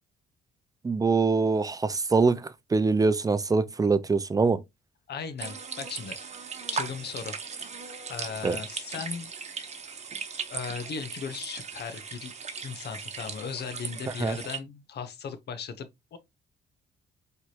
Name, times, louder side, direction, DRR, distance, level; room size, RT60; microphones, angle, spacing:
voice 1, 0.8-2.4 2.7-4.6 8.4-8.6 14.2-14.4, right 4 dB, 20° right, 0.5 m, -23 dB
voice 2, 5.1-6.2 6.7-7.7 8.1-9.3 10.5-12.3 12.6-16.2, left 6 dB, 55° left, 0.9 m, -37 dB
sound 1, 5.4-14.6, right 5 dB, 35° right, 0.9 m, -38 dB
4.6 x 3.3 x 2.9 m
cardioid pair, 90°, 20 cm